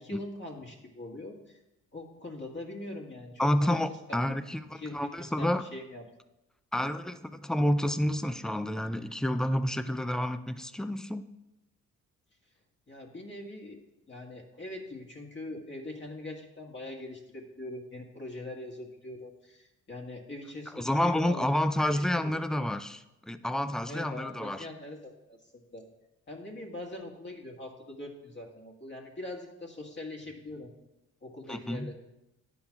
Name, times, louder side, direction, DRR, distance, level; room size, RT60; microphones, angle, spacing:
voice 1, 0.0-1.6 1.9-4.2 4.7-6.0 12.9-13.8 14.1-21.5 21.9-22.6 23.8-25.9 26.3-30.7 31.2-31.9, left 2 dB, 40° left, 1 dB, 1.7 m, -42 dB
voice 2, 3.4-5.6 6.7-11.2 20.8-24.7 31.5-31.9, left 1 dB, ahead, 11 dB, 0.4 m, -29 dB
9.7 x 3.8 x 5.8 m, 0.95 s
cardioid pair, 90°, 30 cm